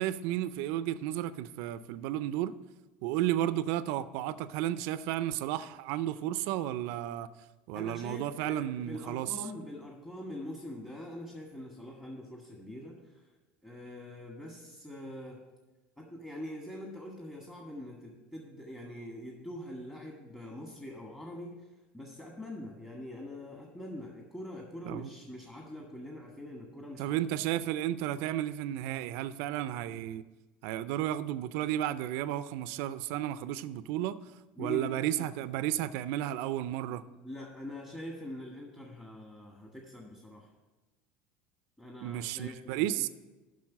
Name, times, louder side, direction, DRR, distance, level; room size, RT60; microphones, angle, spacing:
voice 1, 0.0-2.5 3.0-7.3 7.7-9.3 24.9-25.1 27.0-30.2 30.6-34.2 34.6-37.0 42.0-43.1, right 12 dB, 70° right, 0.4 m, -33 dB
voice 2, 7.7-13.2 13.6-15.4 16.0-21.6 21.9-27.2 34.6-35.3 37.2-40.5 41.8-43.1, left 1 dB, 15° left, 1.5 m, -44 dB
7.3 x 5.8 x 7.3 m
supercardioid pair, 100°, 5 cm